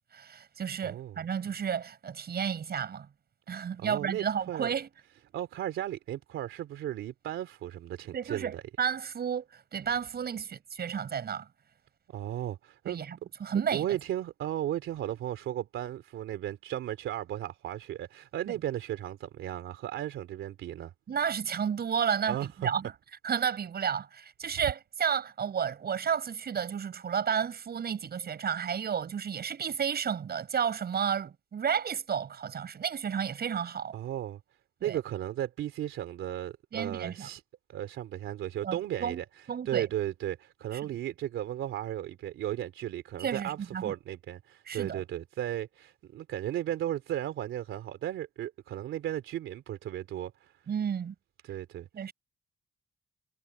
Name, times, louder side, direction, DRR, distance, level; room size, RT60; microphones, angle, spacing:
voice 1, 0.1-3.1 3.5-4.9 8.1-11.5 12.9-13.9 21.1-22.9 23.2-34.0 34.8-35.0 36.7-37.3 38.6-39.2 39.5-39.9 40.8-40.9 43.2-43.9 44.7-45.0 50.7-51.1 51.9-52.1, right 7 dB, 55° right, 7.8 m, -32 dB
voice 2, 0.8-1.2 3.8-4.7 5.3-8.6 12.1-13.0 13.7-20.9 22.3-22.7 33.9-34.4 34.8-37.4 37.7-50.6 51.4-52.1, right 12 dB, 80° right, 3.0 m, -35 dB
cardioid pair, 90°, 20 cm